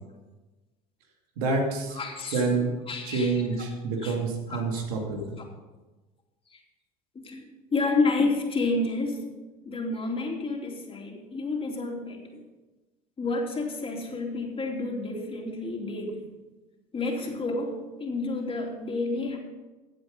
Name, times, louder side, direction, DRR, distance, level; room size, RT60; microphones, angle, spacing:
voice 1, 1.4-2.0 2.3-2.7 3.0-5.4, right 3 dB, 90° right, 1 dB, 2.5 m, -27 dB
voice 2, 1.9-2.5 2.9-3.3 4.0-4.1 4.5-4.7 7.1-7.4 7.7-9.3 9.6-12.4 13.2-16.2 16.9-19.4, left 3 dB, 30° left, 1 dB, 2.9 m, -29 dB
15.0 x 7.9 x 5.3 m, 1.2 s
supercardioid pair, 90°, 19 cm